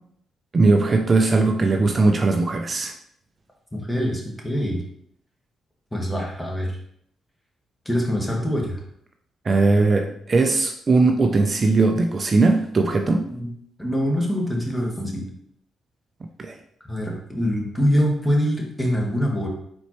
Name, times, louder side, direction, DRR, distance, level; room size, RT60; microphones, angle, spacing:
voice 1, 0.5-2.9 9.4-13.3 16.4-16.6, right 3 dB, 40° right, 4 dB, 0.5 m, -19 dB
voice 2, 3.7-4.8 5.9-6.7 7.8-8.8 13.3-13.5 13.8-15.2 16.9-19.5, equal, 10° left, -1 dB, 1.6 m, -24 dB
4.3 x 4.1 x 3.1 m, 0.69 s
supercardioid pair, 55°, 0 cm